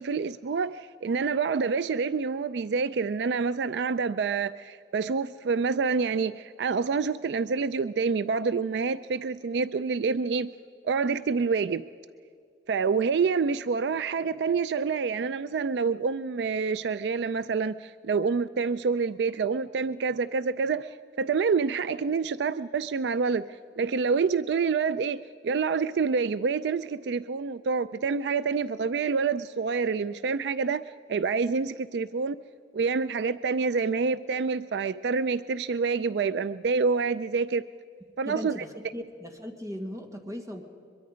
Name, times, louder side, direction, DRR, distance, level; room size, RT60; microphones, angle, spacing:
voice 1, 0.0-10.5 10.8-11.9 12.7-32.4 32.7-37.6 38.2-38.6, right 5 dB, 70° right, 14 dB, 0.4 m, -27 dB
voice 2, 38.2-40.6, equal, 20° right, 3 dB, 1.8 m, -38 dB
23.0 x 22.5 x 5.1 m, 2.3 s
head